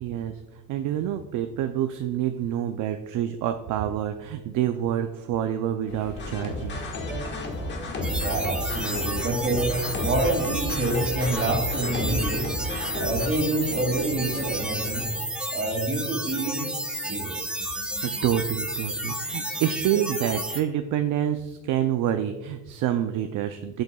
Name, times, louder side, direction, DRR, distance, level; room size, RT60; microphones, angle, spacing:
voice 1, 0.0-0.4 0.7-6.8 18.0-23.8, right 10 dB, 60° right, 7 dB, 0.5 m, -27 dB
sound 1, 5.9-15.1, left 2 dB, 50° left, 2.5 m, -41 dB
sound 2, 6.2-13.3, left 1 dB, 30° left, 1.4 m, -32 dB
sound 3, 8.0-20.6, right 1 dB, 5° right, 0.5 m, -31 dB
voice 2, 8.2-9.7 10.0-12.5 12.9-15.1 15.5-17.5 18.2-18.3, right 2 dB, 35° right, 0 dB, 2.5 m, -27 dB
13.5 x 7.9 x 2.3 m, 1.2 s
cardioid pair, 155°, 34 cm